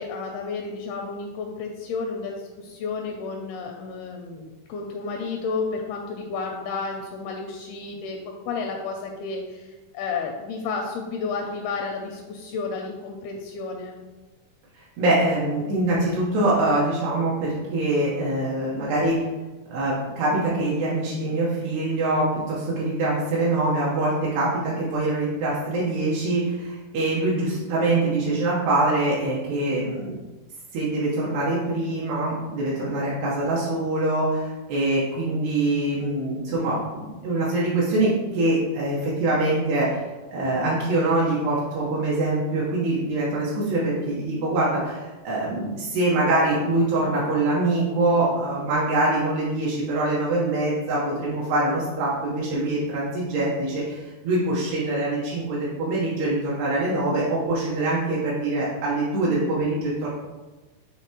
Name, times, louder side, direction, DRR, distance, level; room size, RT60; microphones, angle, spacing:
voice 1, 0.0-14.0, left 4 dB, 85° left, 1 dB, 2.3 m, -32 dB
voice 2, 14.7-19.2 19.7-30.1 30.7-60.1, right 2 dB, 80° right, -7 dB, 3.1 m, -24 dB
8.9 x 3.5 x 3.0 m, 1.2 s
omnidirectional pair, 4.8 m